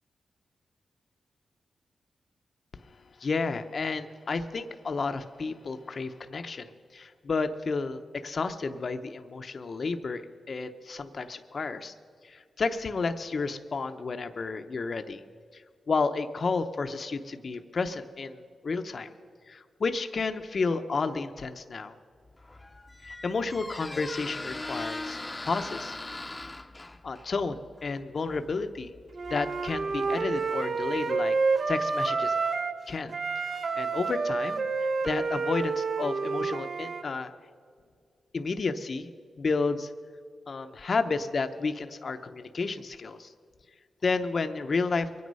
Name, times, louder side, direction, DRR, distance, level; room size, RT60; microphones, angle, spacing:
voice 1, 3.2-10.2 10.5-11.9 12.2-15.2 15.5-15.6 15.9-19.1 19.5-21.9 23.0-25.2 25.4-26.0 27.0-28.9 29.3-31.4 31.7-32.4 32.9-33.2 33.4-37.3 38.3-39.1 39.4-39.9 40.5-43.3 44.0-45.1, left 4 dB, 55° left, 8 dB, 0.7 m, -31 dB
Squeak, 22.3-31.0, left 2 dB, 20° left, 0.7 m, -41 dB
Wind instrument woodwind instrument, 29.2-32.8 33.1-37.0, right 4 dB, 55° right, 0.7 m, -29 dB
23.5 x 9.5 x 5.4 m, 2.1 s
cardioid pair, 75°, 0 cm